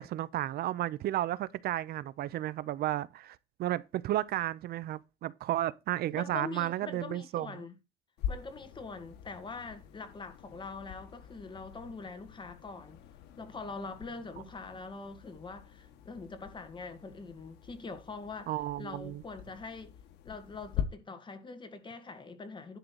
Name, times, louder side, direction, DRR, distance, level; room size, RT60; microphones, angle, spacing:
voice 1, 0.0-7.5 18.5-19.2, right 14 dB, 65° right, 0.6 m, -33 dB
voice 2, 6.1-7.7 8.3-13.0 13.4-20.0 20.2-22.8, left 4 dB, 30° left, 2.1 m, -43 dB
sound 1, 8.2-20.8, left 10 dB, 85° left, 1.4 m, -44 dB
11.0 x 3.8 x 6.3 m
cardioid pair, 110°, 17 cm